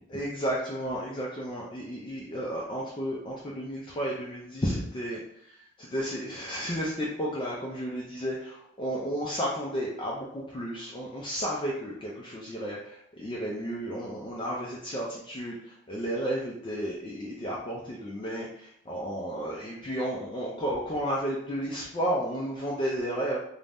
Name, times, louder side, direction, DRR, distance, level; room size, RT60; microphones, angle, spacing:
voice 1, 0.0-23.4, equal, 20° left, -5 dB, 0.3 m, -33 dB
2.5 x 2.1 x 3.3 m, 0.73 s
head